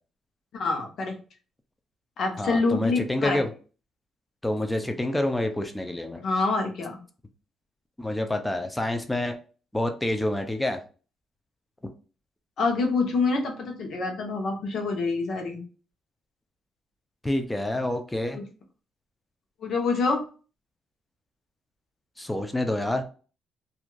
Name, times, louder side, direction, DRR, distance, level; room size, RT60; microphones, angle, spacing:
voice 1, 0.5-1.1 2.2-3.4 6.2-7.0 12.6-15.6 18.3-18.4 19.6-20.2, left 3 dB, 65° left, 3 dB, 0.9 m, -26 dB
voice 2, 2.4-3.5 4.4-6.2 8.0-9.4 9.7-10.8 17.2-18.4 22.2-23.0, left 1 dB, 10° left, 6 dB, 0.6 m, -27 dB
2.8 x 2.5 x 2.3 m, 0.36 s
cardioid pair, 90°, 0 cm